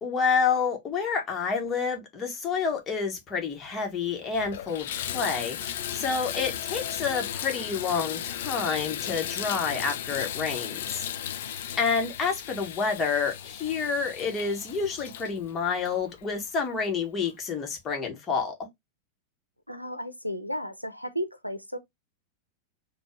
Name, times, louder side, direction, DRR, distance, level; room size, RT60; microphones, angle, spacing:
voice 1, 0.0-11.1 11.8-18.7, left 5 dB, 25° left, 1.3 m, -29 dB
Water tap faucet / Bathtub (filling or washing), 3.7-3.8 4.2-16.6 17.3-17.4 17.9-18.0, left 10 dB, 55° left, 0.5 m, -36 dB
voice 2, 19.7-21.8, equal, 90° right, 0.6 m, -34 dB
4.3 x 2.4 x 3.1 m
figure-of-eight pair, 90°, 0 cm